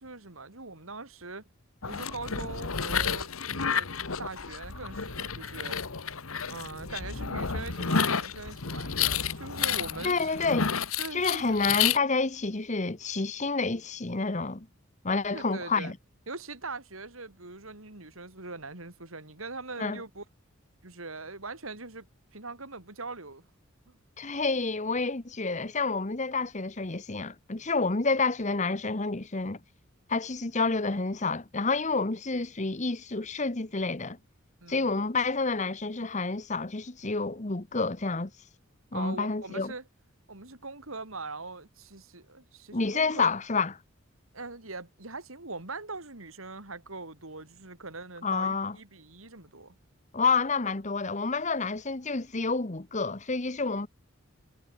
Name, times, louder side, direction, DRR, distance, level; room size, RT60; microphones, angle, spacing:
voice 1, 0.0-1.4 1.9-3.9 4.2-5.8 6.5-10.3 11.0-11.6 15.3-15.9 16.3-20.2 20.8-22.1 22.3-23.4 23.9-24.0 34.6-34.9 38.9-39.8 40.3-43.3 44.3-49.7, right 3 dB, 80° right, 4.2 m, -41 dB
sound 1, 1.8-12.0, left 7 dB, 85° left, 1.6 m, -31 dB
voice 2, 10.0-10.7 11.1-14.7 15.0-16.0 19.8-20.0 24.2-29.6 30.1-34.2 34.7-38.3 38.9-39.7 42.7-43.7 48.2-48.8 50.1-53.9, left 4 dB, 35° left, 1.1 m, -29 dB
head